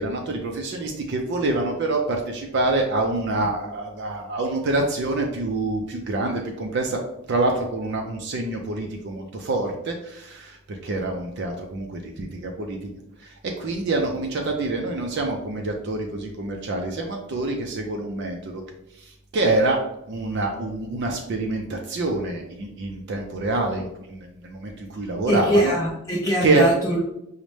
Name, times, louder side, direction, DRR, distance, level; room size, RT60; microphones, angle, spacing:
voice 1, 0.0-7.0 7.3-12.8 13.2-18.6 19.0-19.8 20.1-25.7 26.4-26.8, right 2 dB, 50° right, 2 dB, 0.4 m, -26 dB
voice 2, 25.3-27.1, right 1 dB, 15° left, -6 dB, 0.4 m, -22 dB
5.1 x 2.1 x 3.1 m, 0.86 s
head